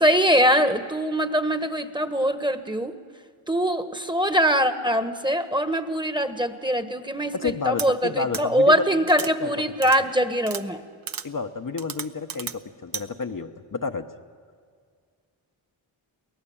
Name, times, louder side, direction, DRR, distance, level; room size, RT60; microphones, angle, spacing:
voice 1, 0.0-2.9 3.5-10.8, equal, 10° right, 9 dB, 1.4 m, -22 dB
voice 2, 7.3-9.5 11.2-14.1, left 4 dB, 40° left, 5 dB, 1.1 m, -30 dB
sound 1, 7.8-7.9 8.3-8.4 9.1-9.3 9.8-10.0 10.4-10.6 11.1-11.3 11.8-12.6 12.9-13.0, right 6 dB, 45° right, 1.0 m, -33 dB
23.5 x 17.5 x 7.2 m, 2.1 s
cardioid pair, 50°, 49 cm